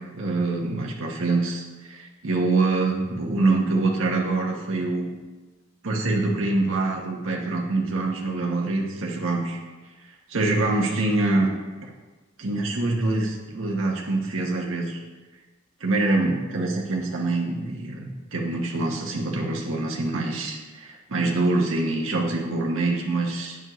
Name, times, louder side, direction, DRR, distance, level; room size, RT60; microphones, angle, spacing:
voice 1, 0.1-5.1 5.8-9.6 10.3-11.5 11.8-11.9 12.4-15.0 15.8-23.6, right 2 dB, 75° right, -1 dB, 1.0 m, -25 dB
9.0 x 7.1 x 3.0 m, 1.3 s
head